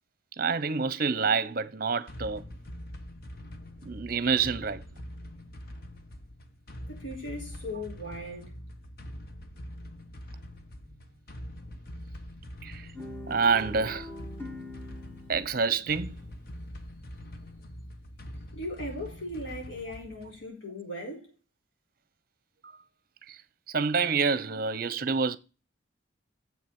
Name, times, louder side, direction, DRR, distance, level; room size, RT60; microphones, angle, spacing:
voice 1, 0.4-2.4 3.8-4.8 12.6-12.9 13.3-14.1 15.3-16.2 22.6-22.7 23.3-23.4 23.7-25.4, right 5 dB, 50° right, 0.7 m, -27 dB
sound 1, 2.1-20.5, equal, 50° left, 1.0 m, -44 dB
voice 2, 6.9-8.5 18.5-21.3, left 1 dB, 85° left, 4.5 m, -38 dB
Guitar, 12.9-17.3, left 2 dB, 10° left, 1.3 m, -45 dB
7.6 x 5.9 x 5.9 m
head